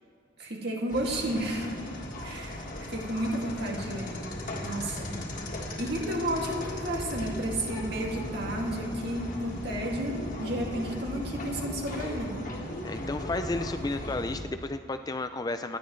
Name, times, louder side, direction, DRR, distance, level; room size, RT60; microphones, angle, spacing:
voice 1, 0.4-1.9 2.2-4.2 4.6-5.2 5.8-12.5, right 1 dB, 55° right, -1 dB, 2.4 m, -32 dB
sound 1, 0.9-14.4, left 1 dB, 40° left, 1.7 m, -37 dB
voice 2, 12.8-15.8, left 2 dB, 20° left, 8 dB, 0.3 m, -32 dB
27.0 x 10.5 x 3.2 m, 2.4 s
head